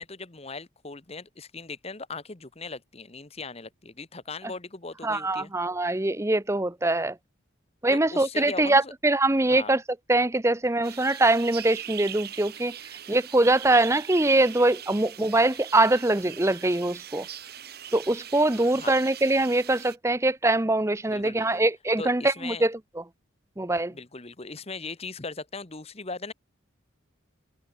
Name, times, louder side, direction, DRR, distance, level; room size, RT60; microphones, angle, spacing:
voice 1, 0.0-5.5 7.9-8.9 9.5-9.7 18.7-18.9 21.1-21.6 22.0-22.7 23.9-26.3, left 3 dB, 30° left, 1.2 m, -39 dB
voice 2, 5.0-7.2 7.8-9.8 10.1-12.7 13.1-17.3 17.9-22.8 23.6-23.9, right 2 dB, 15° right, 0.6 m, -23 dB
sound 1, 10.8-20.0, right 10 dB, 50° right, 7.2 m, -41 dB
head